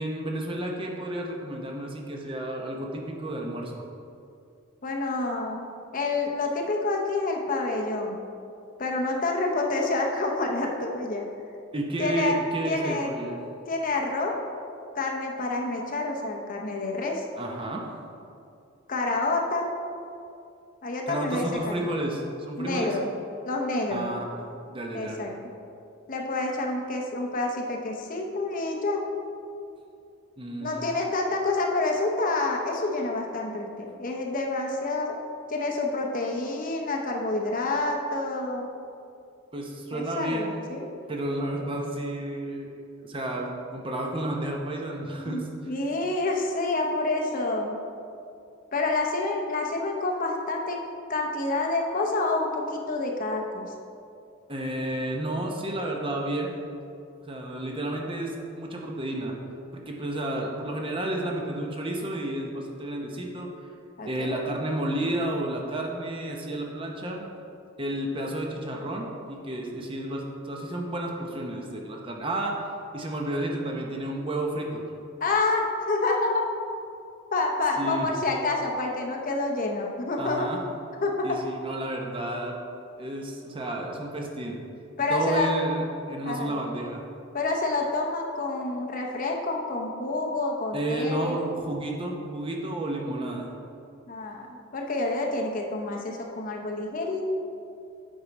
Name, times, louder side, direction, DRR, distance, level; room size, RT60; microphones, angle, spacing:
voice 1, 0.0-3.8 11.7-13.4 17.4-17.9 21.1-23.0 23.9-25.2 30.4-30.8 39.5-40.5 41.1-42.7 43.0-45.4 54.5-56.5 57.3-59.4 59.7-63.5 64.1-67.3 67.8-72.6 72.9-74.8 77.8-78.1 80.2-80.6 81.2-82.6 83.0-84.6 85.1-87.0 90.7-93.5, right 1 dB, 25° right, 0 dB, 0.7 m, -31 dB
voice 2, 4.8-5.7 5.9-8.2 8.8-11.3 12.0-12.3 12.7-13.2 13.7-14.4 14.9-17.2 18.9-19.7 20.8-21.9 22.6-23.1 23.4-24.1 24.9-25.4 26.1-29.0 30.6-35.2 35.5-38.7 39.9-41.0 45.2-45.4 45.7-47.7 48.7-50.8 51.1-53.7 64.0-64.4 75.2-76.5 77.3-80.5 81.0-81.4 85.0-85.6 86.3-86.5 87.3-91.4 94.1-97.3, left 2 dB, 40° left, 1 dB, 0.7 m, -28 dB
8.9 x 4.8 x 4.0 m, 2.5 s
head